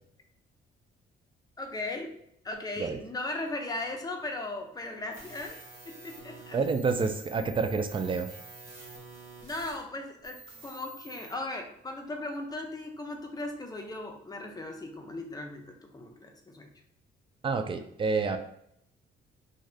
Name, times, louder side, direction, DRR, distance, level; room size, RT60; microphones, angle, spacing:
voice 1, 1.6-2.1 2.4-5.6 5.8-6.6 9.4-16.7, left 2 dB, 20° left, 3 dB, 0.6 m, -37 dB
sound 1, 5.1-9.8 10.2-11.3, right 3 dB, 90° right, 1.0 m, -49 dB
voice 2, 6.5-8.3 17.4-18.4, right 4 dB, 25° right, 7 dB, 0.4 m, -28 dB
2.7 x 2.4 x 3.2 m, 0.73 s
cardioid pair, 90°, 20 cm